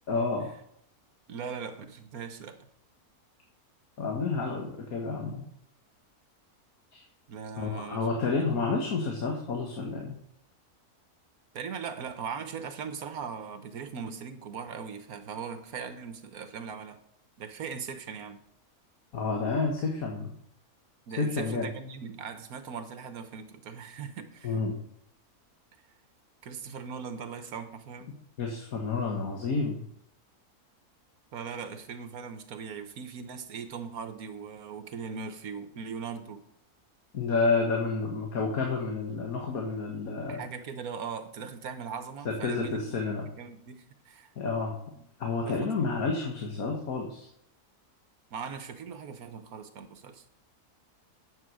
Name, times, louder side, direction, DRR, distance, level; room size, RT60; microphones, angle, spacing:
voice 1, 0.1-0.5 4.0-5.4 6.9-7.0 7.6-10.2 19.1-20.3 21.2-21.7 24.4-24.8 28.4-29.9 37.1-40.4 42.3-43.2 44.4-44.8 45.2-47.3, left 4 dB, 65° left, 1 dB, 2.0 m, -30 dB
voice 2, 1.3-2.7 7.3-8.0 8.4-8.6 11.5-17.0 17.4-18.4 21.1-24.6 26.4-28.1 31.3-36.4 40.3-44.3 45.0-45.1 45.4-45.8 48.3-50.2, right 6 dB, 70° right, 9 dB, 1.6 m, -40 dB
9.6 x 7.9 x 6.3 m, 0.72 s
omnidirectional pair, 1.6 m